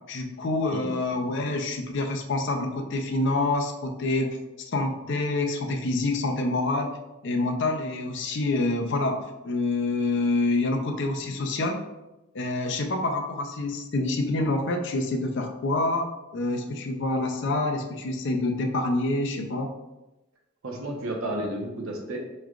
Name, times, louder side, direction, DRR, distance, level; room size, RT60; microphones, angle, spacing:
voice 1, 0.1-4.4 4.7-7.0 7.2-11.8 12.3-16.1 16.3-19.8, left 2 dB, 60° left, 3 dB, 0.5 m, -27 dB
voice 2, 20.6-22.2, right 1 dB, 80° right, 1 dB, 0.8 m, -32 dB
4.7 x 3.2 x 2.4 m, 1.0 s
head